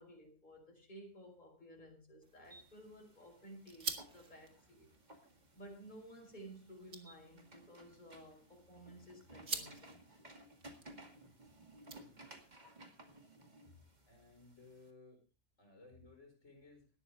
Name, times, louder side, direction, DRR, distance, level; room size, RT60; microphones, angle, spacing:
voice 1, 0.0-4.9 5.6-10.1 13.6-13.9, right 1 dB, 35° left, 1 dB, 5.2 m, -55 dB
lighter flick, 2.2-12.5, right 4 dB, 65° right, 2.3 m, -50 dB
sound 1, 2.4-14.9, right 1 dB, 30° right, 2.4 m, -59 dB
voice 2, 14.1-15.2 15.6-16.9, left 3 dB, 55° left, 3 dB, 5.2 m, -60 dB
18.5 x 13.0 x 3.5 m, 0.34 s
omnidirectional pair, 1.4 m